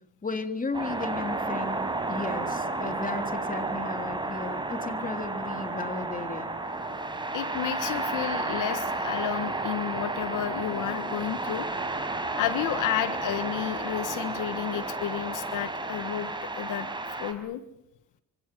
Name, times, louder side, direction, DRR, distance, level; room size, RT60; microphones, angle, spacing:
voice 1, 0.2-6.5, left 3 dB, 25° left, 7 dB, 3.4 m, -35 dB
sound 1, 0.7-17.3, right 2 dB, 15° right, 5.2 m, -32 dB
voice 2, 7.3-11.7 12.3-16.9 17.2-17.6, left 11 dB, 85° left, 11 dB, 1.5 m, -31 dB
27.0 x 25.5 x 7.8 m, 0.82 s
cardioid pair, 90°, 30 cm